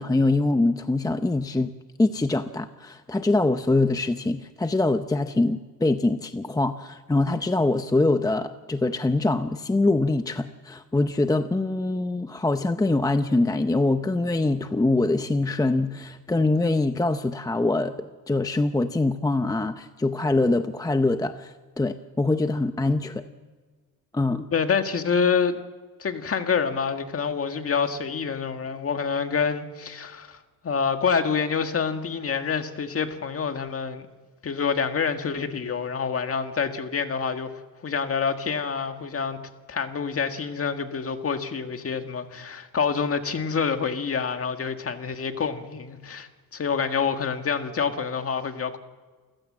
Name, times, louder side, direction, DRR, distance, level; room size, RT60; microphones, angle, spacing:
voice 1, 0.0-1.7 2.0-23.2 24.1-24.5, left 2 dB, 10° left, 0.7 m, -24 dB
voice 2, 24.5-25.6 26.0-34.1 34.4-39.4 39.7-48.8, left 6 dB, 40° left, 1.8 m, -27 dB
28.5 x 15.5 x 7.5 m
cardioid pair, 115°, 36 cm